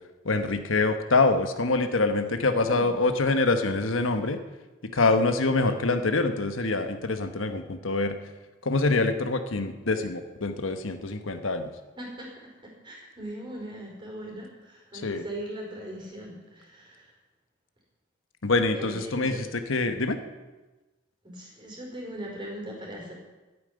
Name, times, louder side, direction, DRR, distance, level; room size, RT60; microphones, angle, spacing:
voice 1, 0.2-4.4 4.8-8.2 8.6-11.7 15.0-15.2 18.4-20.2, left 3 dB, 80° left, 8 dB, 1.1 m, -25 dB
voice 2, 2.5-2.9 12.0-12.3 12.6-17.1 18.7-19.4 21.2-23.1, right 1 dB, 25° right, -1 dB, 4.8 m, -39 dB
11.5 x 9.1 x 9.6 m, 1.2 s
head